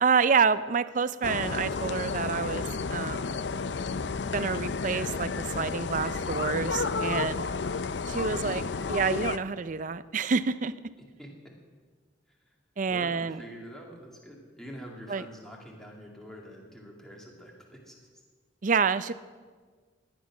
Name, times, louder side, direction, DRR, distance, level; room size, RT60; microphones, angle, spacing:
voice 1, 0.0-3.4 4.3-7.5 8.1-10.7 12.8-13.4 15.1-15.2 18.6-19.1, right 5 dB, 45° right, 15 dB, 0.5 m, -28 dB
sound 1, 1.2-9.4, left 4 dB, 75° left, 0.5 m, -31 dB
voice 2, 12.9-18.2, equal, 5° left, -1 dB, 2.4 m, -46 dB
17.5 x 10.5 x 6.1 m, 1.5 s
head